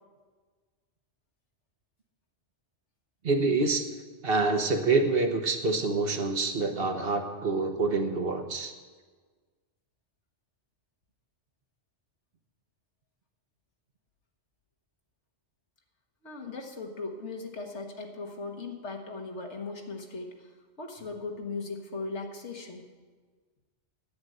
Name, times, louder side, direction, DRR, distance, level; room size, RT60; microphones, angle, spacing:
voice 1, 3.2-3.9 4.2-8.7, right 3 dB, 55° right, 5 dB, 1.2 m, -26 dB
voice 2, 16.2-20.5 20.8-22.9, left 3 dB, 70° left, 3 dB, 1.8 m, -38 dB
10.5 x 8.8 x 7.8 m, 1.5 s
omnidirectional pair, 1.2 m